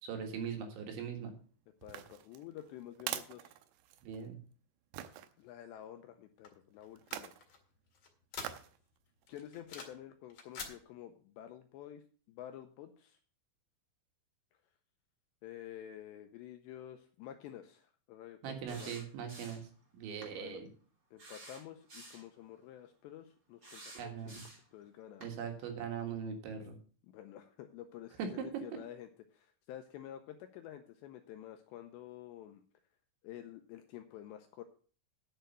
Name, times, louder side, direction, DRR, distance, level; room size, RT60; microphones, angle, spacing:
voice 1, 0.0-1.3 4.0-4.4 18.4-19.6 19.9-20.7 24.0-24.4 25.2-26.8 28.2-28.5, right 7 dB, 70° right, 4 dB, 3.8 m, -40 dB
voice 2, 1.8-3.6 5.4-7.3 9.3-13.2 15.4-19.0 20.3-20.6 21.1-24.4 24.7-25.4 27.0-32.6 33.2-34.6, left 11 dB, 85° left, 7 dB, 2.6 m, -50 dB
sound 1, 1.8-4.3 4.9-5.3 7.0-7.4 8.4-8.8 9.2-9.3, right 12 dB, 90° right, 2.4 m, -43 dB
sound 2, 6.4-8.9 9.3-10.0 10.3-10.8, left 5 dB, 50° left, 1.9 m, -47 dB
sound 3, 18.7-19.7 20.2-20.4 21.2-22.3 23.6-24.7 25.2-25.3, right 2 dB, 30° right, 2.6 m, -51 dB
10.5 x 6.8 x 6.6 m, 0.43 s
omnidirectional pair, 5.7 m